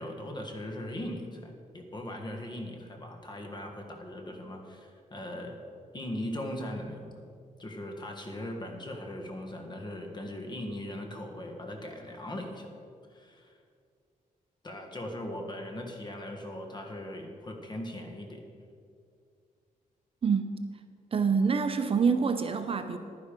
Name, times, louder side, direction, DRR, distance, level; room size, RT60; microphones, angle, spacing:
voice 1, 0.0-5.6 5.9-7.2 7.6-12.7 13.1-13.6 14.6-18.4, left 1 dB, 30° left, 3 dB, 1.6 m, -39 dB
voice 2, 20.2-20.6 21.1-23.0, right 5 dB, 40° right, 8 dB, 0.7 m, -26 dB
11.0 x 10.0 x 5.2 m, 2.3 s
cardioid pair, 115°, 14 cm